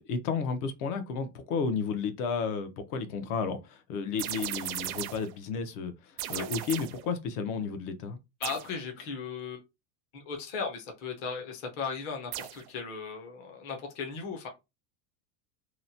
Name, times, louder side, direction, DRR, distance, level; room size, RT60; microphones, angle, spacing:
voice 1, 0.1-8.2, left 5 dB, 70° left, 0.7 m, -32 dB
sound 1, 4.2-5.3 6.2-7.1 8.4-8.8 12.3-12.7, right 13 dB, 65° right, 0.5 m, -36 dB
voice 2, 8.4-9.6 10.1-14.5, left 5 dB, 25° left, 0.4 m, -37 dB
2.9 x 2.1 x 2.6 m
supercardioid pair, 170°, 47 cm